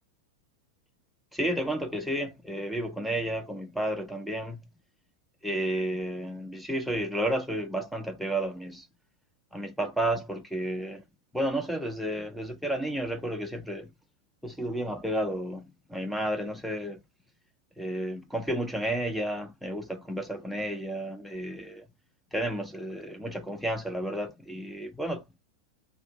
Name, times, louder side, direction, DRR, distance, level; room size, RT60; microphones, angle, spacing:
voice 1, 1.3-4.6 5.4-8.9 9.5-11.0 11.3-13.9 14.4-17.0 17.8-21.8 22.3-25.2, right 1 dB, ahead, 0.7 m, -32 dB
2.5 x 2.1 x 3.3 m
figure-of-eight pair, 90°, 0 cm